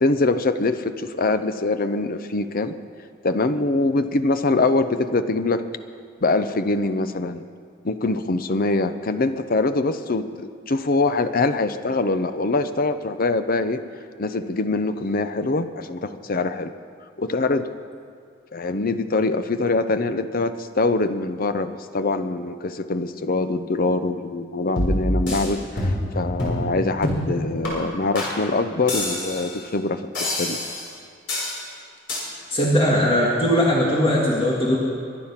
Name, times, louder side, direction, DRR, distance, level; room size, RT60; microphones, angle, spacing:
voice 1, 0.0-2.8 3.2-5.6 6.2-7.4 7.8-13.8 14.2-16.7 17.2-17.7 18.5-30.6, left 3 dB, 50° left, 11 dB, 0.7 m, -23 dB
sound 1, 24.8-25.5 25.8-26.1 26.4-26.6 27.0-27.3 27.6-27.7 28.1-28.3 28.9-29.5 30.1-30.9 31.3-31.6 32.1-32.2, left 1 dB, 65° left, 5.5 m, -26 dB
voice 2, 32.5-34.8, equal, 30° left, -4 dB, 2.1 m, -19 dB
23.5 x 10.5 x 5.8 m, 2.2 s
head